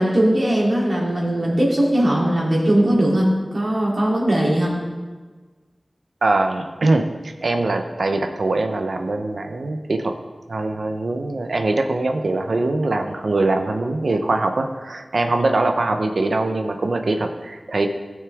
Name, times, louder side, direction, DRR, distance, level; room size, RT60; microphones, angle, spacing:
voice 1, 0.0-4.8, right 1 dB, 65° right, -5 dB, 3.0 m, -19 dB
voice 2, 6.2-10.1 10.5-17.9, right 2 dB, 85° right, 6 dB, 0.8 m, -22 dB
15.5 x 6.4 x 3.5 m, 1.4 s
wide cardioid pair, 45°, 0 cm